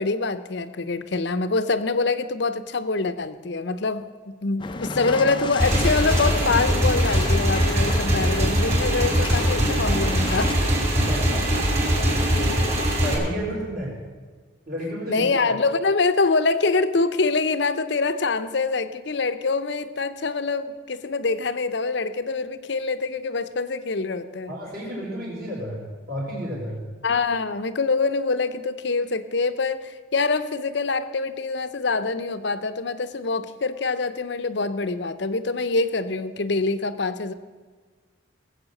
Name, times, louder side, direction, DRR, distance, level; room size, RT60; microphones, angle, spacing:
voice 1, 0.0-10.6 15.1-24.5 27.0-37.3, left 3 dB, 60° left, 12 dB, 0.7 m, -25 dB
sound 1, 4.6-10.5, left 3 dB, 25° left, 0.5 m, -33 dB
Motorcycle / Engine, 5.6-13.1, equal, 30° right, 4.4 m, -22 dB
voice 2, 10.9-11.7 12.0-12.1 13.0-13.9 14.7-15.3 24.5-26.8, equal, 50° right, -3 dB, 4.2 m, -31 dB
18.5 x 8.0 x 6.5 m, 1.5 s
head